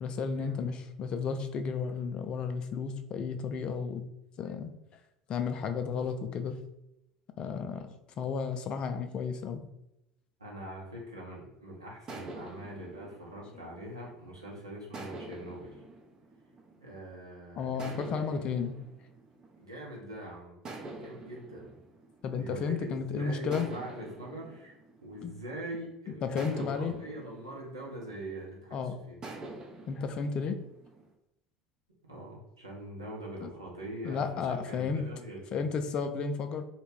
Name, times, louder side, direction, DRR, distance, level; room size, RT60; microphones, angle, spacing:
voice 1, 0.0-4.0 4.4-4.7 5.3-6.6 7.4-9.6 13.5-13.7 17.6-18.8 22.2-23.7 25.2-25.3 26.2-26.9 28.7-29.0 29.9-30.6 33.4-33.5 34.0-35.1 35.5-36.6, left 5 dB, 40° left, 7 dB, 0.3 m, -33 dB
voice 2, 10.4-15.8 16.8-18.6 19.6-20.6 21.0-21.7 22.3-24.7 25.0-29.2 32.1-35.6, right 1 dB, 85° right, -4 dB, 0.7 m, -43 dB
sound 1, 12.1-14.3 14.9-17.2 17.8-20.1 20.7-22.9 23.5-25.8 26.4-28.6 29.2-31.1, right 2 dB, 35° right, 0.5 m, -47 dB
2.2 x 2.1 x 3.3 m, 0.86 s
figure-of-eight pair, 65°, 2 cm